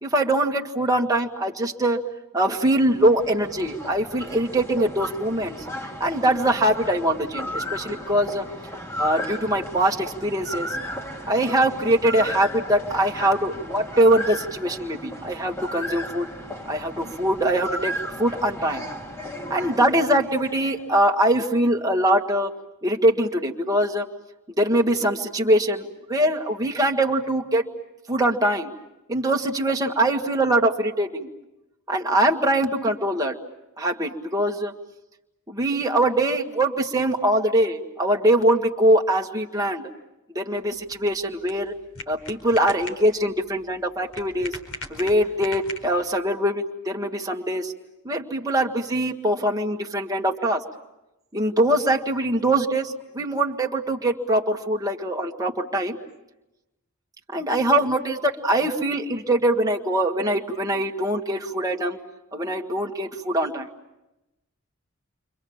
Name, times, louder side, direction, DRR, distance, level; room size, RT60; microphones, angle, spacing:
voice 1, 0.0-2.0 2.3-5.6 6.0-8.5 9.0-10.8 11.3-16.3 16.7-18.9 19.5-22.5 22.8-24.1 24.5-27.6 28.1-28.7 29.1-31.3 31.9-33.4 33.8-34.7 35.5-39.9 40.3-41.7 42.1-44.6 44.9-47.7 48.0-50.6 51.3-56.0 57.3-62.0 62.3-63.7, right 1 dB, 15° right, 2 dB, 1.7 m, -23 dB
sound 1, 2.5-20.9, left 1 dB, 15° left, 2.1 m, -35 dB
sound 2, 40.5-46.2, left 2 dB, 85° left, 4.6 m, -40 dB
29.5 x 25.5 x 7.2 m, 0.96 s
head